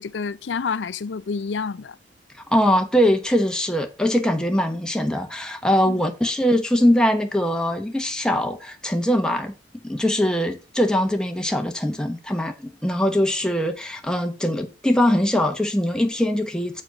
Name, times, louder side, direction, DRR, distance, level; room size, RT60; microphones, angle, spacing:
voice 1, 0.0-2.0 5.9-6.0, left 5 dB, 90° left, 0.5 m, -28 dB
voice 2, 2.5-9.5 9.8-16.8, equal, 5° left, 1.1 m, -22 dB
8.5 x 4.9 x 5.2 m
head